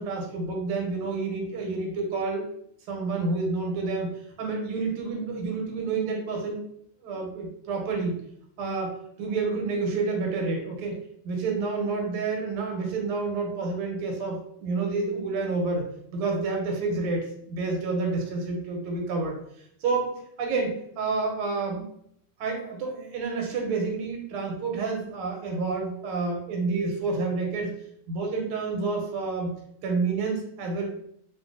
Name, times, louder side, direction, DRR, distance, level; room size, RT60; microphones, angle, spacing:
voice 1, 0.0-2.4 2.9-4.1 4.4-6.6 7.0-8.2 8.6-8.9 9.2-15.9 16.1-19.4 19.8-20.1 20.4-21.9 22.4-27.7 28.1-29.5 29.8-30.9, right 3 dB, 90° right, 1 dB, 1.6 m, -29 dB
3.3 x 2.5 x 2.4 m, 0.71 s
omnidirectional pair, 2.3 m